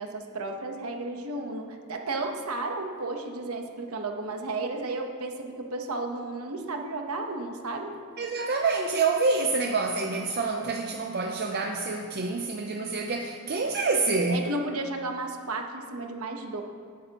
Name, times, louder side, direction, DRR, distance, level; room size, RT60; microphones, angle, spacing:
voice 1, 0.0-8.0 14.3-16.6, right 2 dB, 85° right, 3 dB, 1.1 m, -33 dB
voice 2, 8.2-14.5, right 3 dB, 45° right, 3 dB, 0.6 m, -27 dB
17.5 x 8.3 x 3.0 m, 2.3 s
head